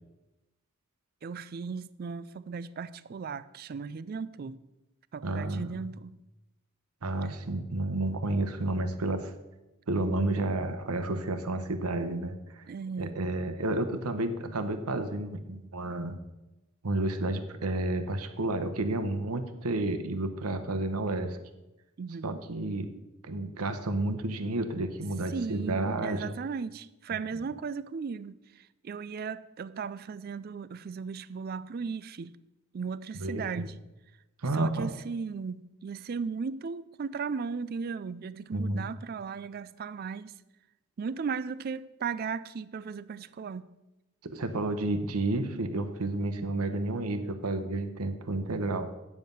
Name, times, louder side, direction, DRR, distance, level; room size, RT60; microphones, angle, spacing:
voice 1, 1.2-4.6 5.1-6.1 12.7-13.2 22.0-22.4 25.3-32.3 32.7-33.7 34.5-40.3 41.0-43.7, right 5 dB, 45° right, 0.3 m, -36 dB
voice 2, 5.2-5.9 7.0-9.3 9.9-12.6 13.0-16.2 16.8-21.4 22.2-26.3 33.1-33.7 34.4-34.9 38.5-38.9 44.2-48.9, right 2 dB, 90° right, 0.9 m, -31 dB
9.4 x 7.3 x 5.4 m
head